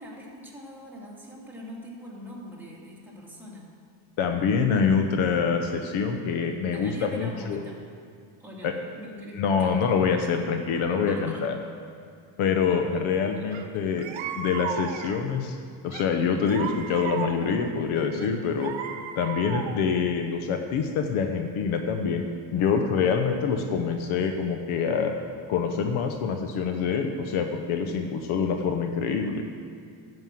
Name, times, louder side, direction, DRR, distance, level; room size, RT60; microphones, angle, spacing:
voice 1, 0.0-3.7 6.7-7.8 8.4-9.8 10.2-10.3 11.1-11.4 12.6-13.7, equal, 5° right, -5 dB, 2.4 m, -43 dB
voice 2, 4.2-7.6 8.6-8.7 9.4-11.5 12.4-14.0 14.4-15.6 15.8-18.7 19.2-22.2 22.5-25.1 25.5-29.4, left 6 dB, 75° left, 5 dB, 1.0 m, -25 dB
sound 1, 13.5-13.6 14.0-15.4 15.9-17.7 18.2-20.0, right 8 dB, 65° right, 1.0 m, -35 dB
11.0 x 5.6 x 7.6 m, 2.2 s
cardioid pair, 120°, 49 cm